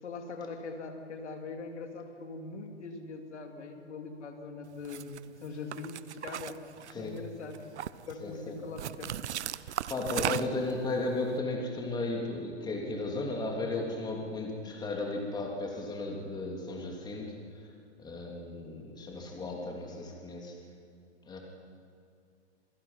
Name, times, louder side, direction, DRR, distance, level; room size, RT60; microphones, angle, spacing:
voice 1, 0.0-7.7 8.1-9.1 10.1-10.4, left 4 dB, 75° left, 4 dB, 3.1 m, -42 dB
sound 1, 4.8-5.2 5.7-7.2 7.5-8.1 8.8-10.7, right 11 dB, 75° right, 0.8 m, -36 dB
voice 2, 8.2-8.6 9.9-17.4 18.0-20.5 21.3-21.4, left 2 dB, 10° left, 0 dB, 3.1 m, -35 dB
27.5 x 17.0 x 5.8 m, 2.3 s
hypercardioid pair, 135°, 35 cm